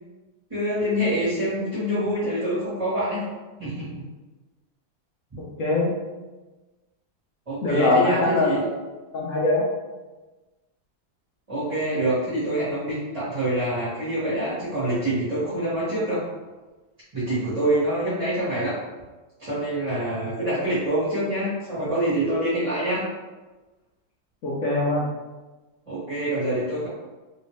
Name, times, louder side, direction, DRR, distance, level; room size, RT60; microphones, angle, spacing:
voice 1, 0.5-3.3 3.6-4.1 7.5-8.6 11.5-16.2 17.1-18.8 19.4-23.0 25.9-26.9, right 1 dB, 20° right, -13 dB, 1.2 m, -25 dB
voice 2, 5.6-5.9 7.6-8.7 9.1-9.6 20.5-20.6 24.4-25.1, left 2 dB, 65° left, -5 dB, 0.8 m, -23 dB
3.1 x 2.8 x 3.1 m, 1.2 s
omnidirectional pair, 2.1 m